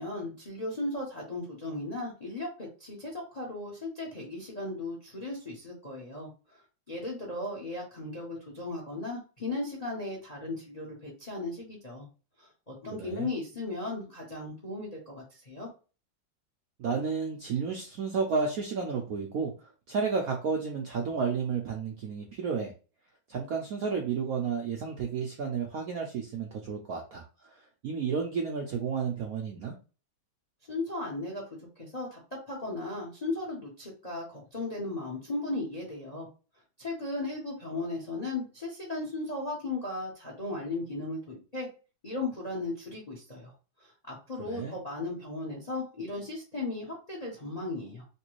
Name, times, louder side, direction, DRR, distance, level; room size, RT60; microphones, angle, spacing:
voice 1, 0.0-6.6 6.9-12.1 12.7-15.7 30.7-31.4 31.8-32.2 32.5-36.3 36.8-41.7 42.0-43.5 43.8-48.0, left 2 dB, 35° left, -1 dB, 0.6 m, -36 dB
voice 2, 12.9-13.3 16.8-19.5 19.9-22.7 23.3-27.2 27.8-29.7 44.4-44.8, right 5 dB, 70° right, 1 dB, 0.8 m, -31 dB
3.3 x 3.0 x 3.0 m, 0.33 s
omnidirectional pair, 2.2 m